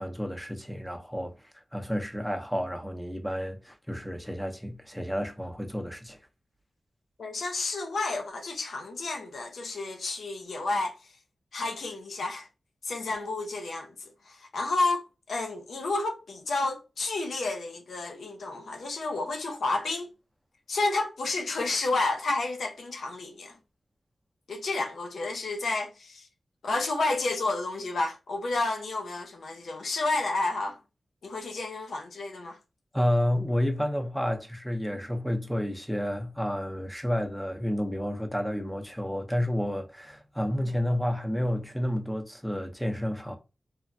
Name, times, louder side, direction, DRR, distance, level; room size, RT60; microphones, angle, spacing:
voice 1, 0.0-1.3 1.7-6.2 32.9-43.4, equal, 5° left, 0.7 m, -30 dB
voice 2, 7.2-11.1 11.5-12.5 12.8-20.1 20.7-23.6 24.5-26.3 26.6-30.8 31.2-32.6, left 2 dB, 90° left, 0.5 m, -31 dB
3.2 x 2.1 x 2.5 m
cardioid pair, 65°, 0 cm